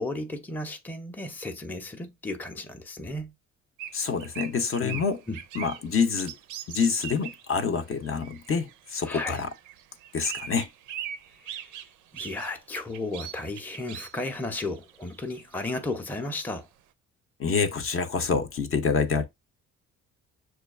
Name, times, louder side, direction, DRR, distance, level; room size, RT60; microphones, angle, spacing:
voice 1, 0.0-3.3 4.8-5.4 9.0-9.4 11.4-16.7, left 2 dB, 5° left, 0.5 m, -34 dB
sound 1, 3.8-7.5 7.9-15.9, right 10 dB, 80° right, 0.5 m, -41 dB
voice 2, 3.9-5.2 5.5-6.4 6.7-9.5 10.1-10.7 17.4-19.2, left 5 dB, 45° left, 0.6 m, -27 dB
6.1 x 2.3 x 2.4 m
cardioid pair, 90°, 30 cm